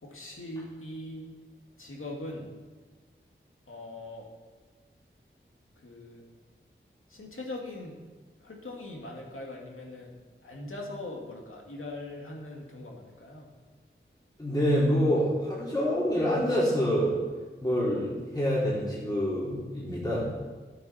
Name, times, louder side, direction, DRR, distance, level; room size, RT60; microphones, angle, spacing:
voice 1, 0.0-1.3 1.8-2.5 3.7-4.3 5.8-6.2 7.1-8.0 8.4-10.2 10.4-13.5, left 2 dB, 80° left, -1 dB, 2.3 m, -41 dB
voice 2, 14.4-17.1 17.6-20.3, equal, 20° left, -8 dB, 3.8 m, -26 dB
13.5 x 8.4 x 4.4 m, 1.4 s
wide cardioid pair, 45°, 21 cm